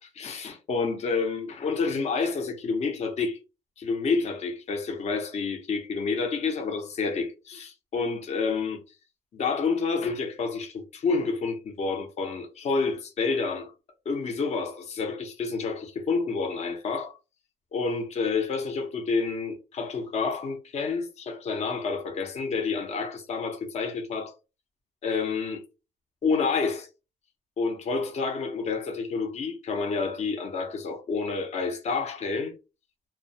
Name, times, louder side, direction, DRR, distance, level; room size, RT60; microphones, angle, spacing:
voice 1, 0.1-3.4 3.8-8.8 9.3-13.7 14.1-17.2 17.7-24.3 25.0-25.6 26.2-26.9 27.6-32.5, left 4 dB, 40° left, 0.6 m, -29 dB
2.2 x 2.1 x 2.6 m
cardioid pair, 110°, 17 cm